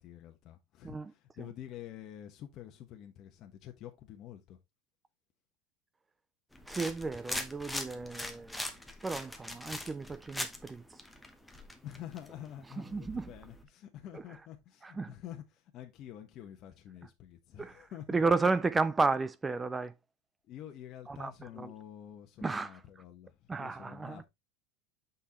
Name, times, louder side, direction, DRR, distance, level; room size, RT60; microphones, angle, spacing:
voice 1, 0.0-4.6 11.8-18.2 20.4-24.2, left 11 dB, 45° left, 1.1 m, -48 dB
sound 1, 6.5-13.6, left 1 dB, 5° left, 1.0 m, -42 dB
voice 2, 6.7-8.6 9.0-10.8 12.9-13.2 14.1-14.2 14.8-15.1 17.6-17.8 18.1-19.9 21.1-21.3 21.6-21.7 22.4-22.7 23.5-24.2, right 4 dB, 15° right, 0.4 m, -32 dB
6.4 x 5.5 x 2.9 m
supercardioid pair, 130°, 0 cm